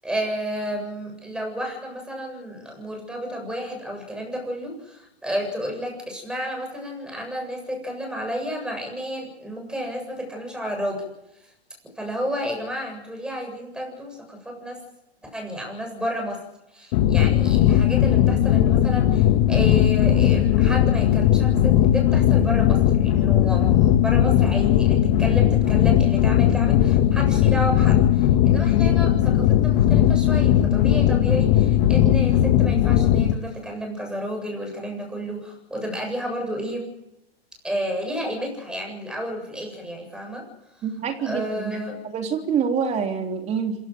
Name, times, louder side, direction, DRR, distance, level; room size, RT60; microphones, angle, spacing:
voice 1, 0.0-11.1 12.0-14.8 15.2-16.4 16.7-36.9 37.6-40.5 41.2-42.0, equal, 5° right, 2 dB, 7.8 m, -31 dB
sound 1, 16.9-33.3, left 11 dB, 40° left, 1.6 m, -18 dB
voice 2, 40.8-41.7 42.1-43.7, right 6 dB, 20° right, 5 dB, 3.3 m, -26 dB
26.5 x 16.5 x 7.8 m, 0.85 s
hypercardioid pair, 145°, 31 cm